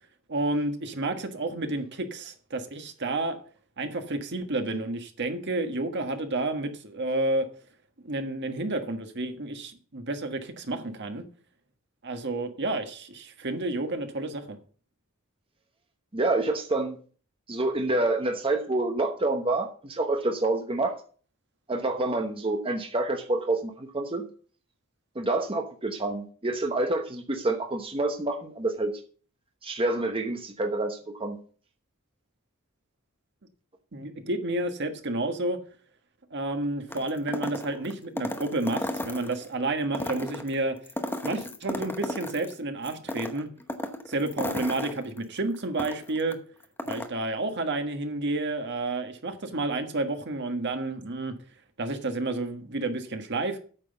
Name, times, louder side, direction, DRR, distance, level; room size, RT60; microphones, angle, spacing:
voice 1, 0.3-3.4 3.8-7.5 8.0-11.2 12.0-14.6 33.9-35.6 36.3-40.7 41.2-43.5 44.1-46.4 46.9-51.3 51.8-53.6, right 2 dB, 55° right, 1.5 m, -30 dB
voice 2, 16.1-17.0 17.5-20.9 21.7-24.3 25.1-28.9 29.6-31.4, right 2 dB, 25° right, 1.0 m, -27 dB
sound 1, 36.9-39.5 39.9-42.5 42.8-46.3 46.6-47.1, left 1 dB, 10° left, 1.0 m, -34 dB
8.9 x 6.2 x 7.0 m
head